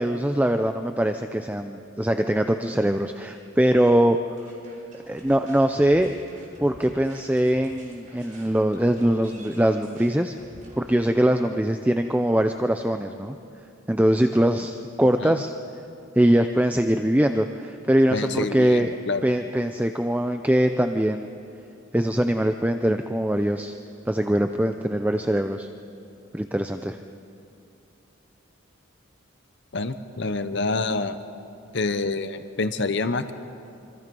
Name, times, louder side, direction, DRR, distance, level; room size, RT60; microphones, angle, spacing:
voice 1, 0.0-4.2 5.1-6.1 6.6-10.4 10.8-13.4 13.9-15.5 16.2-18.9 19.2-21.3 21.9-23.8 24.1-25.7 26.3-27.0, right 1 dB, 10° right, 7 dB, 0.5 m, -22 dB
sound 1, 4.4-10.9, equal, 40° right, 5.2 m, -49 dB
voice 2, 18.1-19.2 29.7-31.2 31.7-33.3, left 3 dB, 60° left, 10 dB, 0.9 m, -27 dB
26.5 x 25.0 x 5.4 m, 2.6 s
head